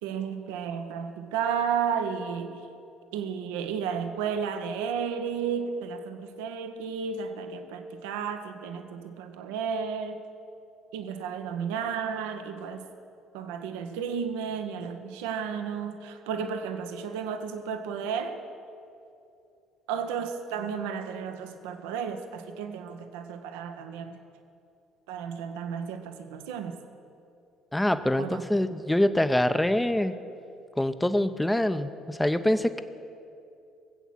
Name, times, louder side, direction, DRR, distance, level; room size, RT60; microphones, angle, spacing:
voice 1, 0.0-2.7 3.1-10.2 10.9-12.9 13.3-18.4 19.9-24.2 25.1-26.8 28.2-28.4, right 7 dB, 70° right, 8 dB, 1.0 m, -33 dB
voice 2, 27.7-30.1 30.8-32.8, left 1 dB, 10° left, 11 dB, 0.8 m, -25 dB
19.0 x 8.2 x 7.5 m, 2.6 s
figure-of-eight pair, 55°, 0 cm